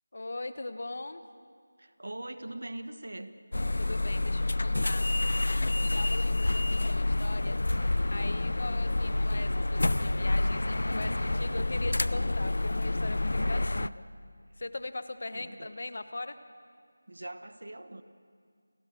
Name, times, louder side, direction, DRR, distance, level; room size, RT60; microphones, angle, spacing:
voice 1, 0.1-1.2 3.6-5.1 5.9-7.6 8.1-13.9 14.6-16.4, left 2 dB, 50° left, 11 dB, 1.1 m, -40 dB
voice 2, 1.8-3.3 13.7-14.0 15.3-15.7 17.1-18.0, right 1 dB, 80° right, 10 dB, 1.3 m, -42 dB
sound 1, 3.5-13.9, left 2 dB, 70° left, 0.5 m, -28 dB
28.5 x 16.5 x 6.5 m, 2.1 s
figure-of-eight pair, 175°, 0 cm